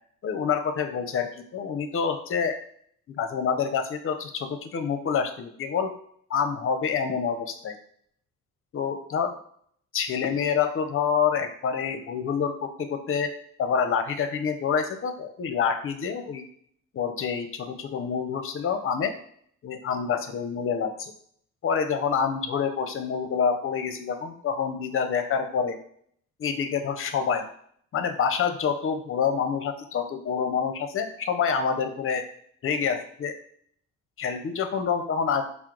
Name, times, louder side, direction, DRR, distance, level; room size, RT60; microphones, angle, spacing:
voice 1, 0.2-2.6 3.1-5.9 6.3-7.8 8.7-9.4 9.9-13.3 13.6-16.4 16.9-19.1 19.6-21.1 21.6-25.8 26.4-27.5 27.9-32.2 32.6-33.3 34.2-35.4, left 6 dB, 45° left, 8 dB, 0.6 m, -27 dB
4.4 x 2.0 x 3.7 m, 0.63 s
cardioid pair, 90°, 30 cm